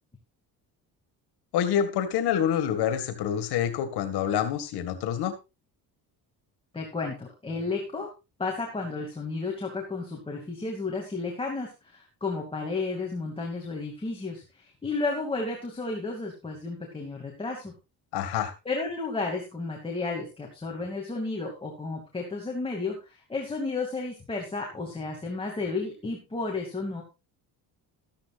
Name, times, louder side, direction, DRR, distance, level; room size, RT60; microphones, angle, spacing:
voice 1, 1.5-5.3 18.1-18.5, left 9 dB, 85° left, 10 dB, 2.0 m, -27 dB
voice 2, 6.7-8.1 8.4-17.7 18.7-27.0, left 3 dB, 15° left, 0 dB, 2.5 m, -32 dB
14.0 x 13.0 x 2.5 m, 0.26 s
cardioid pair, 145°, 38 cm